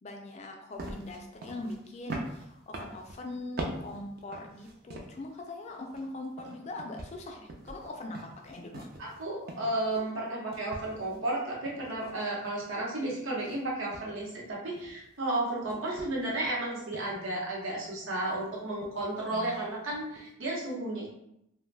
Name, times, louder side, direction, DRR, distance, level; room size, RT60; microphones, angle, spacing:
voice 1, 0.0-8.9 19.3-19.5, left 2 dB, 35° left, 2 dB, 0.3 m, -41 dB
sound 1, 0.8-5.3 5.7-10.3 10.5-12.9 13.4-13.6 13.9-15.3 15.7-16.5 16.9-17.2 18.2-18.4 18.8-19.2 19.5-19.6 19.9-20.3, right 2 dB, 45° right, 0.4 m, -44 dB
voice 2, 9.0-21.1, right 1 dB, 80° right, -4 dB, 0.9 m, -33 dB
2.5 x 2.2 x 3.2 m, 0.79 s
head